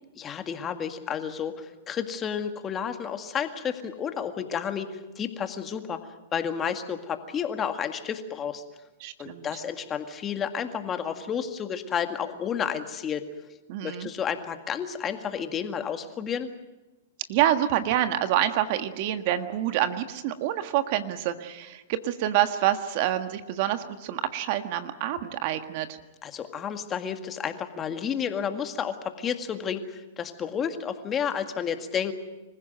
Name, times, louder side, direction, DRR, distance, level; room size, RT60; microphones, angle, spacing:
voice 1, 0.2-6.0 6.3-8.6 9.2-13.2 13.8-16.5 26.2-32.1, left 7 dB, 25° left, 7 dB, 1.9 m, -31 dB
voice 2, 9.0-9.5 13.7-14.1 17.3-26.0, right 12 dB, 50° right, 9 dB, 1.6 m, -27 dB
26.0 x 15.5 x 9.3 m, 1.1 s
hypercardioid pair, 120°, 0 cm